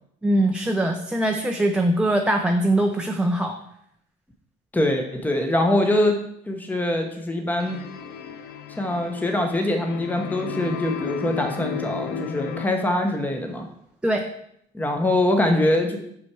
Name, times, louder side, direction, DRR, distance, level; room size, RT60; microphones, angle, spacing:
voice 1, 0.2-3.6 14.0-14.2, right 1 dB, 5° right, 3 dB, 0.5 m, -22 dB
voice 2, 4.7-6.2 6.5-7.8 8.8-13.7 14.7-16.0, left 1 dB, 10° left, 3 dB, 0.9 m, -23 dB
sound 1, 7.5-12.7, left 8 dB, 75° left, 0.7 m, -33 dB
6.0 x 5.7 x 4.7 m, 0.72 s
cardioid pair, 110°, 17 cm